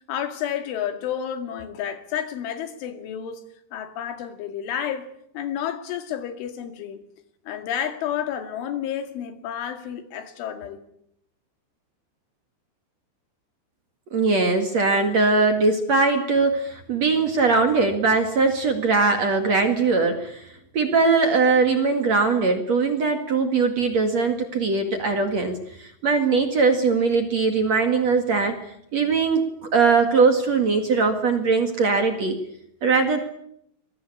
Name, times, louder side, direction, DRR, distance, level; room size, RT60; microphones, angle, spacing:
voice 1, 0.1-3.4 3.7-5.1 5.3-7.0 7.5-10.8, left 9 dB, 85° left, 7 dB, 4.7 m, -30 dB
voice 2, 14.1-20.5 20.7-28.5 28.9-29.4 29.7-32.4 32.8-33.2, right 4 dB, 45° right, 6 dB, 2.5 m, -21 dB
25.5 x 22.5 x 8.5 m, 0.75 s
omnidirectional pair, 5.4 m